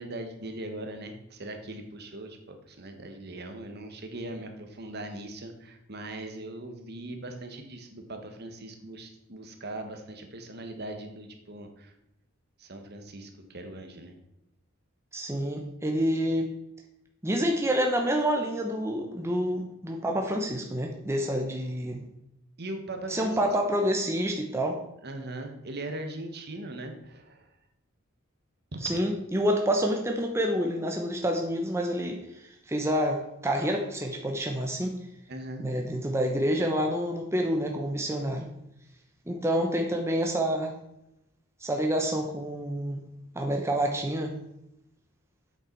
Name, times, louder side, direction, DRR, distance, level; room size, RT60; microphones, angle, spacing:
voice 1, 0.0-11.9 12.6-14.1 22.6-23.5 25.0-27.5 28.7-28.9 35.3-35.7, right 1 dB, 50° right, 5 dB, 1.3 m, -40 dB
voice 2, 15.1-16.5 17.2-22.0 23.1-24.8 28.8-35.0 35.6-38.5 39.3-40.7 41.6-43.0 43.3-44.3, equal, 15° right, 1 dB, 0.8 m, -28 dB
8.3 x 6.6 x 4.6 m, 0.84 s
head